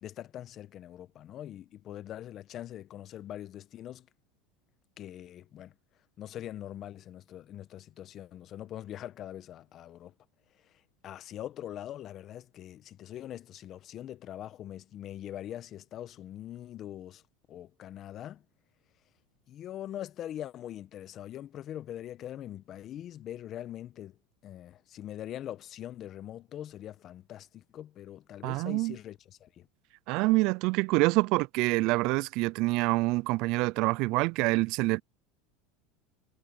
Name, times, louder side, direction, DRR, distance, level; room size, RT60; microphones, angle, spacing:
voice 1, 0.0-4.1 5.0-5.7 6.2-10.1 11.0-17.2 17.5-18.4 19.5-24.2 24.4-29.7, left 12 dB, 40° left, 1.0 m, -42 dB
voice 2, 28.4-29.0 30.1-35.0, right 23 dB, 60° right, 0.3 m, -26 dB
supercardioid pair, 115°, 0 cm